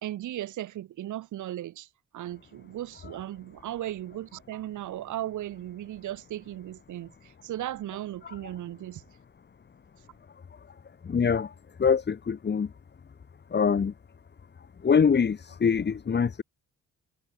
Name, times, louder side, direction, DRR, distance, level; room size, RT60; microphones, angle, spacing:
voice 1, 0.0-1.9 2.1-9.0, right 13 dB, 80° right, 3.3 m, -36 dB
voice 2, 11.0-11.5 11.8-12.7 13.5-13.9 14.8-16.4, left 6 dB, 35° left, 1.6 m, -24 dB
cardioid pair, 90°, 30 cm